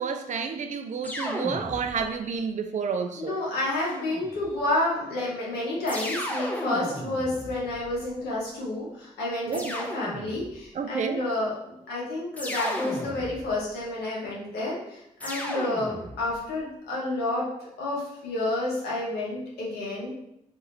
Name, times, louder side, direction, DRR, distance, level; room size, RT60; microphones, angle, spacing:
voice 1, 0.0-3.4 9.5-9.7 10.7-11.2, right 6 dB, 50° right, 7 dB, 0.4 m, -30 dB
sound 1, 1.0-2.2 3.8-4.6 5.9-8.2 9.5-10.6 12.4-13.7 15.2-16.4, equal, 10° left, 0.6 m, -35 dB
voice 2, 3.2-20.1, left 2 dB, 80° left, -5 dB, 0.9 m, -30 dB
2.6 x 2.4 x 3.0 m, 0.79 s
hypercardioid pair, 40°, 16 cm